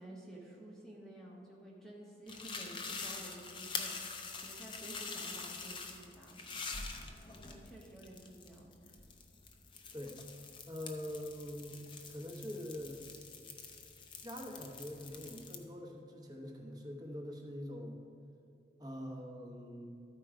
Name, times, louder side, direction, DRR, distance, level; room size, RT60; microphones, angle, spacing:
voice 1, 0.0-6.6 7.3-8.7, right 1 dB, 5° left, -4 dB, 0.9 m, -52 dB
sound 1, 2.3-15.6, left 4 dB, 25° left, 0.6 m, -46 dB
voice 2, 10.7-11.8 12.1-13.0 14.2-18.0 18.8-19.9, equal, 20° right, 0 dB, 0.9 m, -44 dB
13.0 x 4.5 x 4.9 m, 2.5 s
head